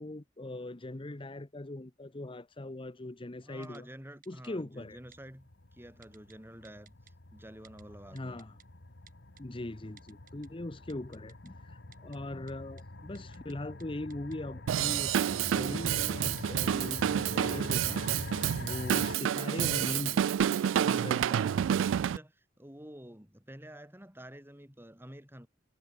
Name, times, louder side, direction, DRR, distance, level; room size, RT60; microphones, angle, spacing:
voice 1, 0.0-3.9 4.3-5.0 8.1-8.6 9.4-15.1 15.5-20.3 20.8-21.2, left 1 dB, 30° left, 0.9 m, -40 dB
voice 2, 3.4-6.9 7.3-8.4 19.9-20.3 20.8-25.5, right 1 dB, 10° right, 6.0 m, -49 dB
Typing, 3.6-3.8 4.2-4.5 5.1-5.2 6.0-6.3 6.6-7.1 7.6-7.8 8.2-8.6 9.1-9.4 10.0-10.5 10.9-11.5 11.9-12.2 12.5-12.6 12.8-12.9 13.1-13.5 13.8-13.9 14.1-14.4 14.9-15.0 15.6-16.0 16.4-17.0 17.3-18.3 18.7-19.4 19.7-19.8 20.1-20.2 20.6-20.7 21.0-21.6 22.0-22.2, right 9 dB, 45° right, 7.0 m, -59 dB
sound 1, 4.8-19.2, left 2 dB, 65° left, 1.7 m, -45 dB
Drum kit / Drum, 14.7-22.2, right 9 dB, 90° right, 0.3 m, -29 dB
head